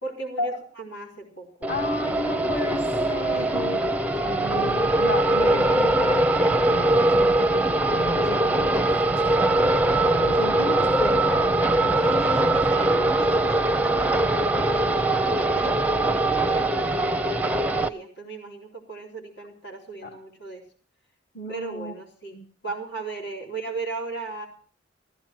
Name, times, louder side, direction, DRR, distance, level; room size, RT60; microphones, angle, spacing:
voice 1, 0.0-1.7 3.3-3.8 12.1-20.6 21.5-22.4 22.6-24.5, right 3 dB, 75° left, 0 dB, 3.9 m, -37 dB
sound 1, 1.6-17.9, right 2 dB, 10° right, 0.6 m, -22 dB
voice 2, 1.7-13.0 20.0-20.1 21.3-21.9 22.3-22.5, left 1 dB, 45° left, 4 dB, 2.0 m, -33 dB
15.0 x 14.5 x 4.5 m, 0.43 s
head